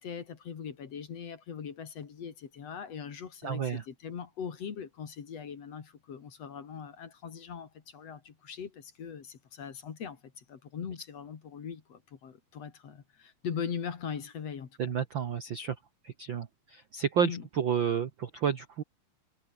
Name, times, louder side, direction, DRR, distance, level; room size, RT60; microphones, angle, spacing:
voice 1, 0.0-14.9 17.2-17.5, left 7 dB, 50° left, 3.2 m, -40 dB
voice 2, 3.4-3.8 14.8-15.7 16.0-18.8, right 7 dB, 55° right, 1.3 m, -31 dB
omnidirectional pair, 3.8 m